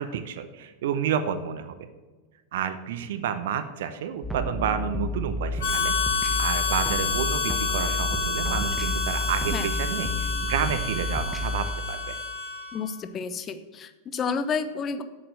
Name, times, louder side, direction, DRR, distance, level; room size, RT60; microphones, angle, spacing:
voice 1, 0.0-1.8 2.5-5.9 6.4-12.2, right 8 dB, 55° right, 10 dB, 0.7 m, -30 dB
sound 1, 4.2-11.7, equal, 5° right, 1.1 m, -31 dB
Harmonica, 5.6-12.9, left 5 dB, 55° left, 2.5 m, -29 dB
voice 2, 12.7-15.0, left 5 dB, 25° left, 11 dB, 0.9 m, -30 dB
8.2 x 7.7 x 8.0 m, 1.3 s
figure-of-eight pair, 90°, 0 cm